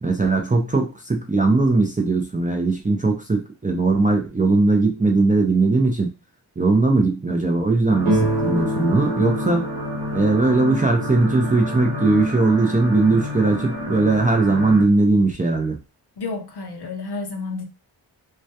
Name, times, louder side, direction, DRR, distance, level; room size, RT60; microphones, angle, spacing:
voice 1, 0.0-6.1 6.6-9.7 10.1-15.8, right 3 dB, 15° right, 0.4 m, -19 dB
sound 1, 7.9-14.8, left 1 dB, 50° right, 0.8 m, -29 dB
sound 2, 8.0-11.6, right 2 dB, 90° right, 1.0 m, -27 dB
voice 2, 16.2-17.7, left 3 dB, 55° left, 0.6 m, -30 dB
2.2 x 2.1 x 2.7 m
wide cardioid pair, 60°, 50 cm